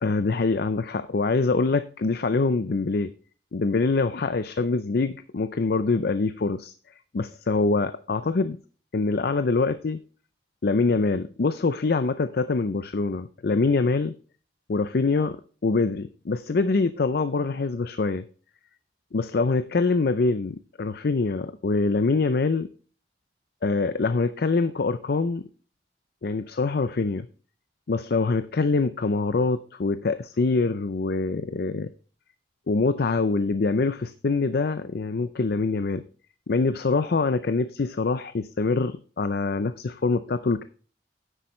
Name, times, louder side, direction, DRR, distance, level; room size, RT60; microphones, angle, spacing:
voice 1, 0.0-3.1 3.5-6.7 7.1-8.6 8.9-10.0 10.6-14.1 14.7-18.2 19.1-22.7 23.6-25.4 26.2-27.3 27.9-31.9 32.7-36.0 36.5-40.6, left 3 dB, 60° left, 12 dB, 0.5 m, -24 dB
10.0 x 8.2 x 3.1 m, 0.39 s
head